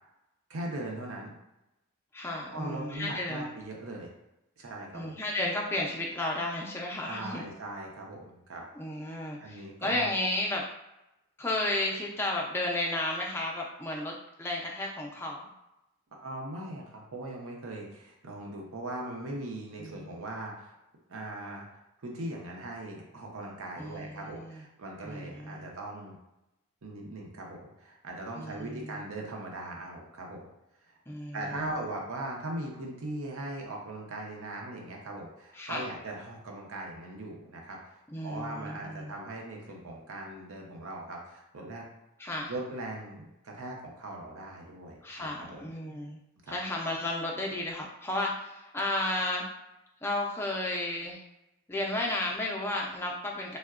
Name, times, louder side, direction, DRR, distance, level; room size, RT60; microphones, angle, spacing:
voice 1, 0.5-1.3 2.5-4.1 4.6-5.1 7.1-8.6 9.4-10.1 16.2-20.8 21.1-26.2 26.8-30.5 30.9-31.0 31.3-41.8 42.5-45.7 46.4-46.6, right 1 dB, 65° right, 0 dB, 0.6 m, -40 dB
voice 2, 2.1-3.5 4.9-7.4 8.7-10.6 11.4-14.1 14.4-15.5 19.8-20.2 23.8-24.6 25.0-25.7 28.3-29.0 31.1-31.9 35.5-35.9 38.1-39.1 42.2-42.5 45.0-46.2 46.5-49.4 50.0-51.2 51.7-53.6, left 1 dB, 10° left, -2 dB, 0.3 m, -33 dB
3.6 x 2.1 x 2.3 m, 0.92 s
head